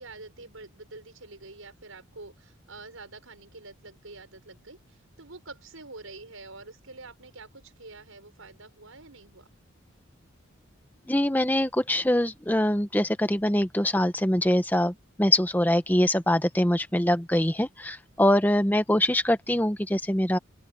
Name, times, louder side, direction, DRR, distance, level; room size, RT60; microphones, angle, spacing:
voice 1, 0.0-9.5, right 3 dB, 90° right, 6.4 m, -46 dB
voice 2, 11.1-20.4, left 1 dB, 10° left, 0.9 m, -24 dB
open air
head